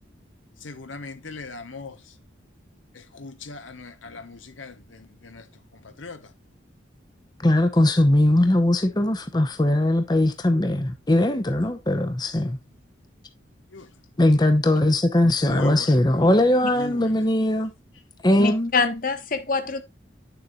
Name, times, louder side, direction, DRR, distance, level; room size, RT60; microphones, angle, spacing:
voice 1, 0.6-1.9 3.2-4.7 5.2-5.4 6.0-6.2 13.7-13.8 15.4-15.9 16.8-17.0, left 3 dB, 85° left, 1.1 m, -37 dB
voice 2, 7.4-12.6 14.2-17.7 18.2-18.7, left 1 dB, 20° left, 0.7 m, -20 dB
voice 3, 18.4-19.8, left 4 dB, 45° left, 1.1 m, -25 dB
9.3 x 7.0 x 2.4 m
head